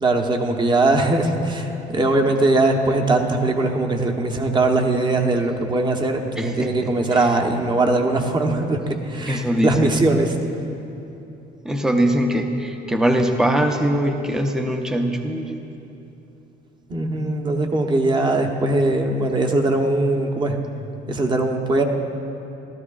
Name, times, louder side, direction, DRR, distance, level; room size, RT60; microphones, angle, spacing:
voice 1, 0.0-10.3 16.9-20.6 21.1-21.8, right 2 dB, 25° right, 3 dB, 1.0 m, -20 dB
voice 2, 6.3-7.2 9.3-10.0 11.6-15.6, right 1 dB, 5° right, 4 dB, 0.6 m, -22 dB
15.0 x 12.5 x 2.4 m, 2.9 s
cardioid pair, 110°, 17 cm